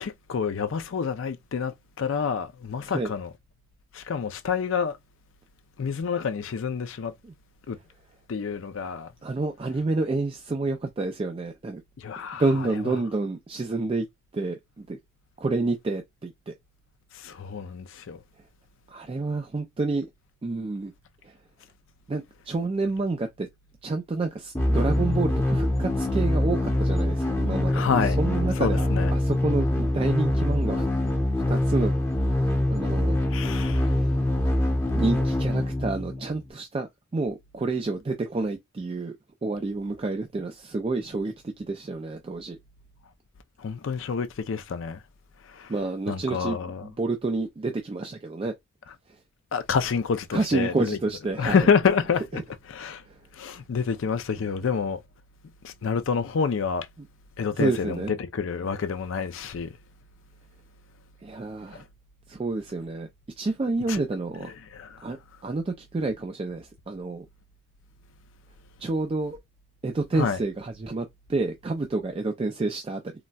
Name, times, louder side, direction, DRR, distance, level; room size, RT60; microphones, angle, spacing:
voice 1, 0.0-3.3 3.9-5.0 5.8-7.1 7.7-7.8 8.3-9.1 12.0-12.4 17.2-18.2 27.7-28.2 28.6-29.1 33.3-33.8 43.6-45.0 46.1-46.8 49.5-51.0 51.4-52.2 52.7-53.0 53.4-55.0 55.6-56.9 57.4-58.0 58.3-59.7 63.9-64.0 64.7-64.9 70.2-70.4, left 6 dB, 60° left, 0.4 m, -27 dB
voice 2, 2.8-3.1 7.2-7.3 9.2-11.8 12.4-14.1 14.3-15.0 15.4-16.5 18.9-20.1 20.4-20.9 21.2-21.3 22.1-23.5 23.8-30.9 31.5-32.0 32.3-32.4 32.7-33.2 35.0-39.2 39.4-42.6 45.7-48.5 50.3-51.7 52.3-52.4 53.1-53.2 57.0-57.1 57.5-58.2 61.2-61.8 62.3-63.1 63.4-64.5 65.0-65.2 65.4-67.3 68.8-69.4 69.8-73.1, right 3 dB, 25° right, 0.3 m, -29 dB
sound 1, 24.5-36.5, left 1 dB, 15° left, 0.7 m, -24 dB
3.9 x 2.1 x 2.2 m
head